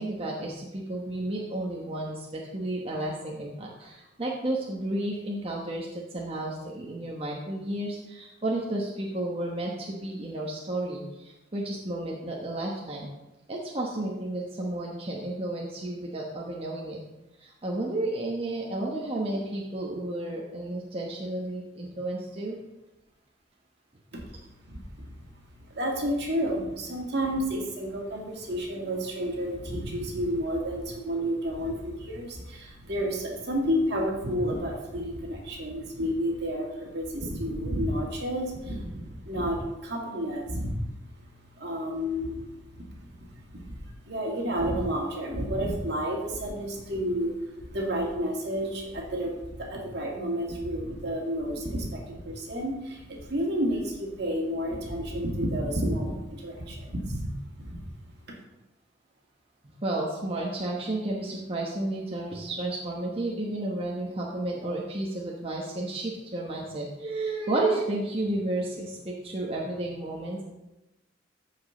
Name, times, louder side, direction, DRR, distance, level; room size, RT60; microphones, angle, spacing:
voice 1, 0.0-13.1 13.5-17.0 17.4-22.6 42.5-42.6 59.8-70.4, right 2 dB, 30° right, -2 dB, 1.1 m, -32 dB
voice 2, 24.7-25.1 25.7-57.3 57.6-57.8, equal, 65° right, -1 dB, 2.1 m, -31 dB
14.0 x 5.1 x 3.9 m, 0.98 s
head